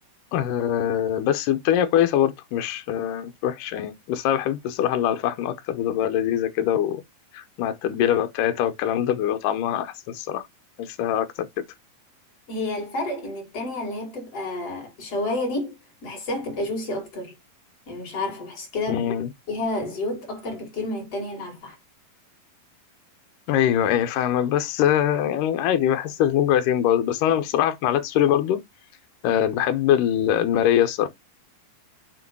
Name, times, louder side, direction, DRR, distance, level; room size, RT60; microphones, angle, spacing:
voice 1, 0.3-7.0 7.3-10.5 10.8-11.5 18.9-19.3 23.5-28.6 29.2-31.1, left 10 dB, 80° left, 2.4 m, -23 dB
voice 2, 12.5-15.8 16.0-17.4 17.9-19.1 19.5-21.8, left 2 dB, 45° left, 3.9 m, -30 dB
7.6 x 3.0 x 6.1 m
omnidirectional pair, 3.8 m